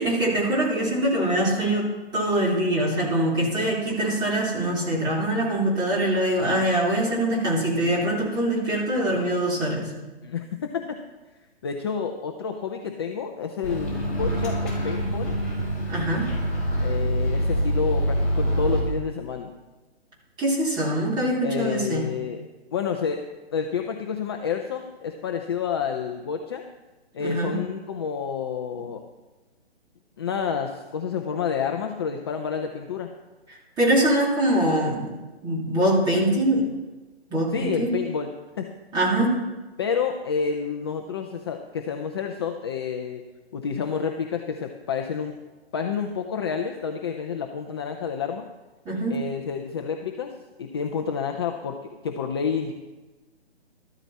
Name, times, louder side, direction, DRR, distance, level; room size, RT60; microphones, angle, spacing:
voice 1, 0.0-9.9 15.9-16.3 20.4-22.0 27.2-27.5 33.8-35.1 35.4-36.6 37.3-37.9 38.9-39.3 48.8-49.2, right 1 dB, 15° right, -5 dB, 2.9 m, -23 dB
voice 2, 10.2-11.0 11.6-15.3 16.8-19.5 21.4-22.4 22.7-23.2 23.5-26.6 27.1-29.0 30.2-33.1 37.5-38.7 39.8-43.2 43.5-45.4 45.7-48.5 49.1-50.3 50.6-52.7, left 6 dB, 25° left, 4 dB, 0.6 m, -29 dB
Microwave oven, 13.6-18.8, equal, 5° left, 5.3 m, -25 dB
13.5 x 13.0 x 4.2 m, 1.2 s
hypercardioid pair, 160°, 32 cm